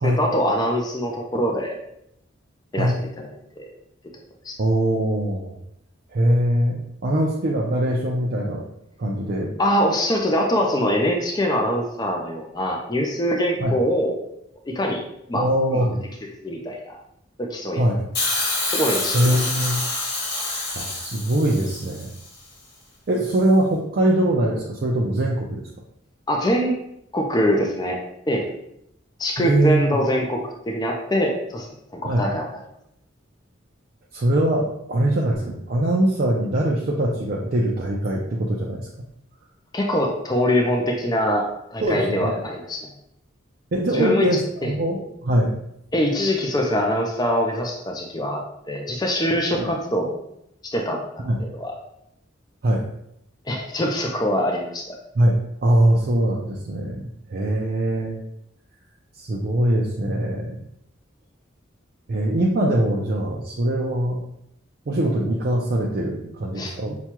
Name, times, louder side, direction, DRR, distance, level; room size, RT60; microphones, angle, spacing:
voice 1, 0.0-1.8 2.7-3.3 3.6-3.7 4.4-4.6 9.6-14.2 14.7-15.0 15.3-15.9 16.4-17.0 17.4-17.9 18.7-19.4 26.3-26.8 27.1-28.0 28.3-28.5 29.2-32.5 39.7-42.9 43.9-44.3 44.6-44.7 45.9-48.4 48.7-50.2 50.6-51.7 53.5-54.9 66.6-66.7, equal, 20° left, 0 dB, 0.4 m, -23 dB
voice 2, 4.6-5.6 6.1-8.6 9.0-9.5 13.6-13.8 15.3-16.0 17.8-18.0 19.1-19.8 20.7-22.1 23.1-25.6 29.4-30.0 32.1-32.3 34.1-38.9 41.8-42.4 43.7-45.5 49.5-49.7 51.2-51.4 52.6-52.9 55.1-58.2 59.2-60.6 62.1-64.2 64.9-67.0, right 1 dB, 50° right, -2 dB, 0.5 m, -22 dB
Hiss, 18.1-22.3 23.3-23.4, left 2 dB, 50° left, 0.9 m, -27 dB
5.9 x 2.3 x 2.9 m, 0.78 s
head